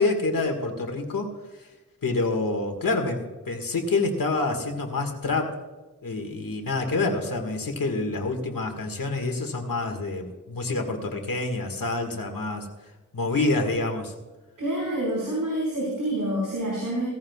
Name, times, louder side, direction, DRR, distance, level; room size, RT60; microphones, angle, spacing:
voice 1, 0.0-1.7 2.0-5.5 6.0-12.7 13.1-14.1, left 3 dB, 90° left, 4 dB, 1.9 m, -27 dB
voice 2, 14.6-17.1, right 1 dB, 75° right, -6 dB, 5.1 m, -27 dB
17.0 x 14.5 x 2.4 m, 1.2 s
wide cardioid pair, 85°, 33 cm